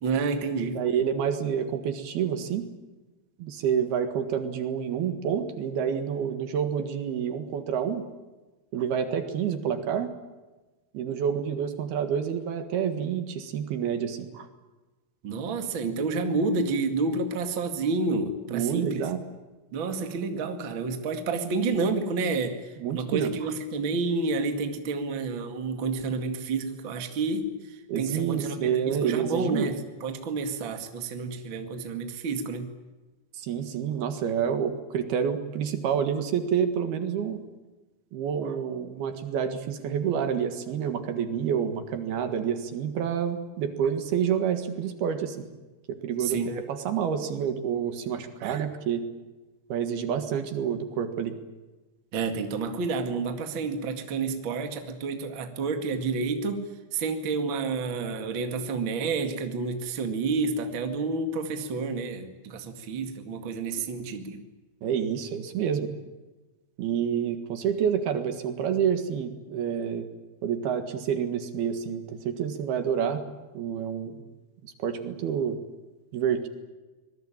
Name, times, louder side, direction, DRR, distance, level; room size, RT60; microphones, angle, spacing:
voice 1, 0.0-0.8 15.2-19.0 19.7-22.6 22.9-27.4 28.0-29.8 30.0-32.7 46.2-46.5 48.4-48.6 52.1-64.4, right 4 dB, 40° right, 6 dB, 2.1 m, -29 dB
voice 2, 0.7-2.7 3.4-8.1 8.7-10.1 10.9-14.5 18.5-19.2 22.8-23.5 27.9-29.7 33.3-37.4 38.1-45.5 45.9-49.1 49.7-51.4 64.8-65.9 66.8-70.1 70.4-73.2 73.6-74.2 74.6-75.6 76.1-76.5, right 8 dB, 70° right, 8 dB, 3.5 m, -28 dB
25.5 x 21.0 x 9.0 m, 1.2 s
omnidirectional pair, 4.9 m